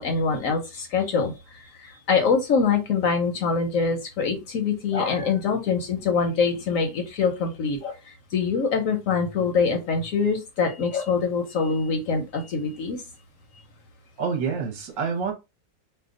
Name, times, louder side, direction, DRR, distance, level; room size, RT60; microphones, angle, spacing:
voice 1, 0.0-13.0, left 5 dB, 65° left, 0.9 m, -24 dB
voice 2, 14.2-15.3, right 5 dB, 55° right, 1.0 m, -27 dB
2.8 x 2.2 x 3.6 m
omnidirectional pair, 1.7 m